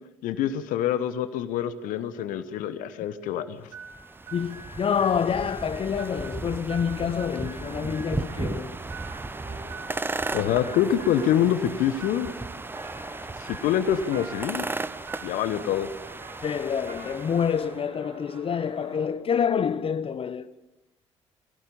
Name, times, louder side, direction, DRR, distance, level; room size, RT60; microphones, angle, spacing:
voice 1, 0.2-3.7 10.3-12.3 13.4-14.7 15.2-15.9, left 10 dB, 60° left, 1.2 m, -26 dB
sound 1, 3.7-17.8, right 3 dB, 15° right, 0.8 m, -36 dB
sound 2, 3.7-14.6 14.9-15.8, right 5 dB, 75° right, 4.8 m, -47 dB
voice 2, 4.3-8.8 16.4-20.5, left 7 dB, 35° left, 0.8 m, -27 dB
sound 3, 8.2-19.1, right 3 dB, 55° right, 6.6 m, -47 dB
21.5 x 17.0 x 7.0 m
figure-of-eight pair, 50°, 15 cm